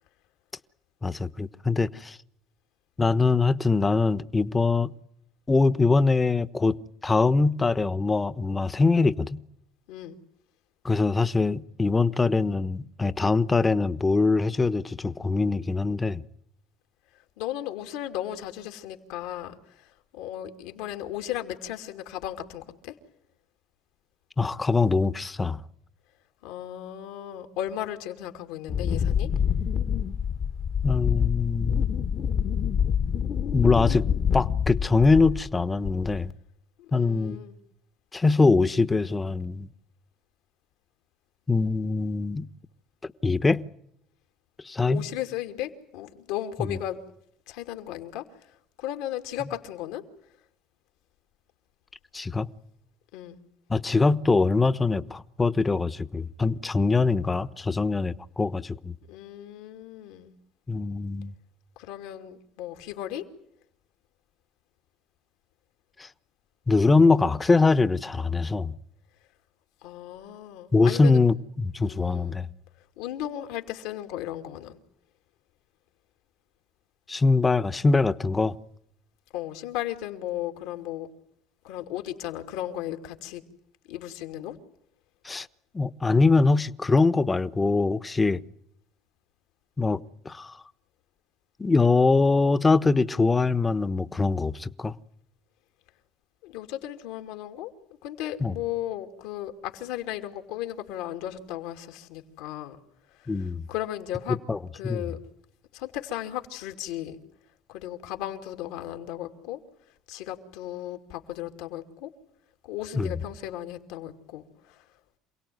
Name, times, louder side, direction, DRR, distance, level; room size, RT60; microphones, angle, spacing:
voice 1, 1.0-2.2 3.0-4.9 5.5-6.8 7.0-9.4 10.8-16.2 24.4-25.6 30.8-31.9 33.5-34.1 34.3-36.3 36.9-37.4 38.1-39.7 41.5-42.5 43.2-43.6 44.6-45.0 46.6-46.8 52.1-52.5 53.7-58.9 60.7-61.3 66.0-66.1 66.7-68.8 70.7-72.5 77.1-78.6 85.2-85.5 85.7-88.4 89.8-90.5 91.6-94.9 98.4-98.5 103.3-103.6 104.5-104.6 104.8-105.0 112.9-113.1, left 3 dB, 20° left, 1.1 m, -23 dB
voice 2, 17.4-19.5 20.1-22.9 26.4-29.3 36.8-37.6 44.9-47.0 47.5-48.2 48.8-50.0 53.1-53.4 59.1-60.3 61.8-63.2 69.8-71.3 71.8-72.4 73.0-74.8 79.3-81.1 81.6-83.4 83.9-84.6 96.4-97.7 98.0-102.8 103.4-104.4 104.7-105.2 105.7-107.2 107.7-109.6 110.1-112.1 112.6-114.8, left 12 dB, 85° left, 2.7 m, -35 dB
Wind, 28.7-35.5 35.8-36.3, left 7 dB, 50° left, 1.3 m, -26 dB
28.0 x 17.5 x 9.4 m
supercardioid pair, 90°, 0 cm